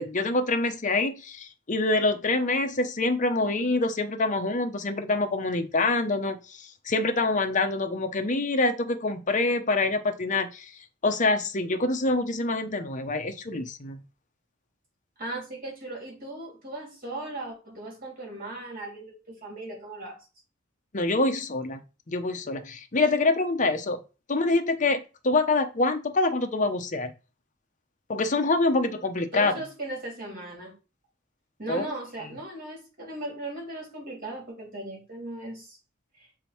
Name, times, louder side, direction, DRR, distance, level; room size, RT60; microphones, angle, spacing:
voice 1, 0.0-10.7 11.0-14.0 20.9-21.8 22.1-24.0 24.3-27.1 28.1-29.5 31.7-31.9, left 2 dB, 40° left, 6 dB, 0.8 m, -26 dB
voice 2, 15.2-20.3 29.3-30.7 31.6-35.8 36.2-36.3, right 2 dB, 50° right, -1 dB, 3.5 m, -37 dB
7.1 x 3.7 x 4.5 m, 0.32 s
head